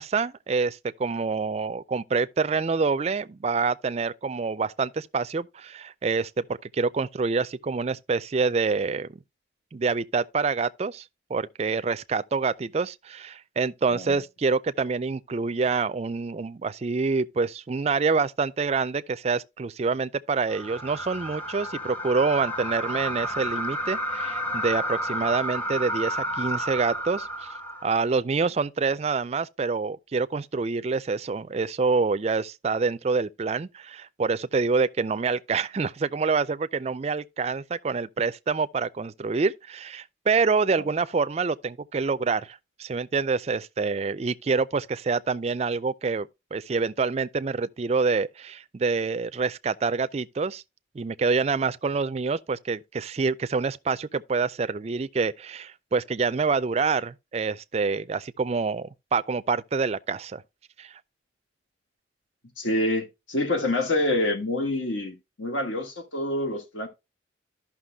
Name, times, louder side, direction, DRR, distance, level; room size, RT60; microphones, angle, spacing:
voice 1, 0.0-9.2 9.7-11.0 11.3-27.5 27.8-50.6 50.9-60.4 60.8-61.0, right 4 dB, 35° right, 0.3 m, -26 dB
sound 1, 20.5-27.9, equal, 10° left, 0.6 m, -31 dB
voice 2, 62.6-66.9, left 1 dB, 80° left, 1.8 m, -27 dB
14.5 x 5.8 x 2.3 m
head